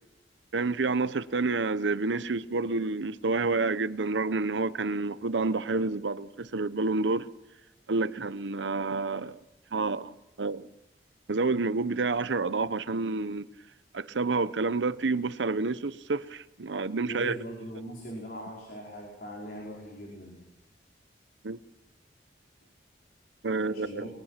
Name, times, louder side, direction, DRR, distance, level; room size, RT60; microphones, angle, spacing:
voice 1, 0.5-7.3 7.9-9.4 9.7-10.7 11.3-13.5 13.9-17.4 21.4-21.6 23.4-24.1, right 3 dB, 85° right, 0.8 m, -29 dB
voice 2, 17.0-20.4 23.6-24.1, equal, 55° left, 5.0 m, -41 dB
22.5 x 21.5 x 5.8 m
head